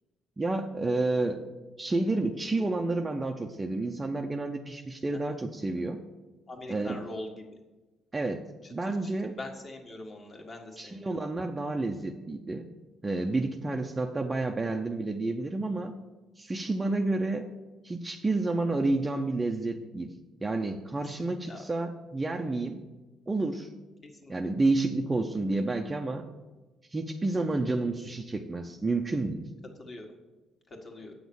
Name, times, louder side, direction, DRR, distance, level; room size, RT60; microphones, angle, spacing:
voice 1, 0.4-1.4 1.8-6.0 6.7-7.0 8.1-8.4 8.7-9.3 10.8-12.7 13.0-15.9 16.4-17.5 17.8-20.1 20.4-22.8 23.3-23.7 24.3-26.3 26.9-29.5, right 2 dB, 15° right, 5 dB, 0.6 m, -30 dB
voice 2, 6.5-7.3 8.6-11.0 16.6-16.7 21.0-21.6 24.2-24.4 29.8-30.1 30.7-31.1, left 2 dB, 30° left, 2 dB, 1.7 m, -43 dB
8.6 x 6.2 x 7.0 m, 1.1 s
cardioid pair, 140°, 0 cm